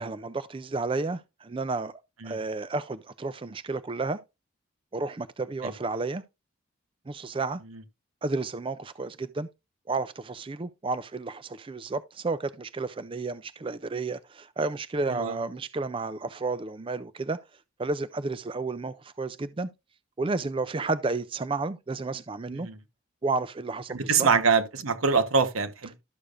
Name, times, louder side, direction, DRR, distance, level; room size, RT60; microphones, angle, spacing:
voice 1, 0.0-1.9 2.2-4.2 4.9-6.2 7.1-7.6 8.2-9.5 9.9-17.4 17.8-19.7 20.2-22.7 23.2-24.3, right 3 dB, 25° right, 0.4 m, -31 dB
voice 2, 23.9-25.9, right 5 dB, 90° right, 1.2 m, -24 dB
12.5 x 6.7 x 2.5 m
head